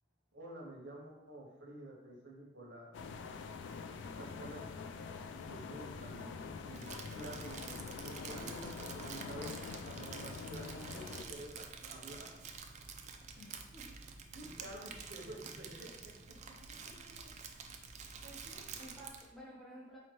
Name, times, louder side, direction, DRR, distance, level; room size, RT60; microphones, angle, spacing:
voice 1, 0.3-3.0 3.9-4.6 5.4-6.4 6.6-6.9 7.1-12.4 14.3-17.1, right 1 dB, 70° right, -1 dB, 0.9 m, -50 dB
sound 1, 2.9-11.2, left 5 dB, 80° left, 0.3 m, -45 dB
Crumpling crinkling, 6.7-19.3, right 5 dB, 40° right, 0.3 m, -49 dB
voice 2, 13.4-14.0 18.2-20.0, right 1 dB, ahead, -7 dB, 0.7 m, -53 dB
4.2 x 2.8 x 3.1 m, 0.97 s
head